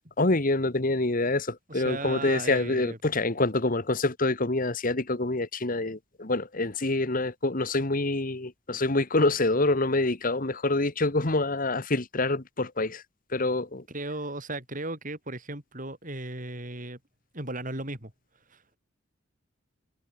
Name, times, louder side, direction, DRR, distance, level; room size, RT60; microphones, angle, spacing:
voice 1, 0.2-13.0 13.3-13.8, left 2 dB, 45° left, 1.6 m, -26 dB
voice 2, 1.7-3.0 13.9-17.0 17.3-18.1 18.5-18.8, right 2 dB, 40° right, 7.1 m, -36 dB
head